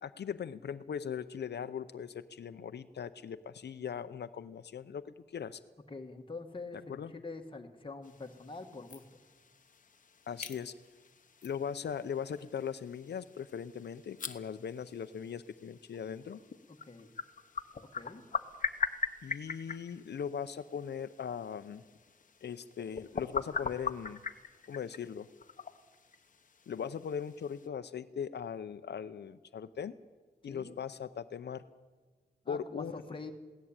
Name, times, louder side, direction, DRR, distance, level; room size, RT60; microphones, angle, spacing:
voice 1, 0.0-5.6 6.7-7.1 10.3-10.7 11.4-16.4 19.2-21.8 22.4-24.2 24.7-25.3 26.7-29.9 30.4-31.6 32.5-33.0, left 7 dB, 85° left, 10 dB, 0.7 m, -39 dB
voice 2, 5.9-9.0 16.7-17.1 18.0-18.2 30.4-30.8 32.4-33.3, left 3 dB, 30° left, 4 dB, 1.6 m, -45 dB
sound 1, 8.0-27.7, left 5 dB, 50° left, 1.0 m, -42 dB
22.0 x 17.0 x 8.8 m, 1.4 s
wide cardioid pair, 160°, 17 cm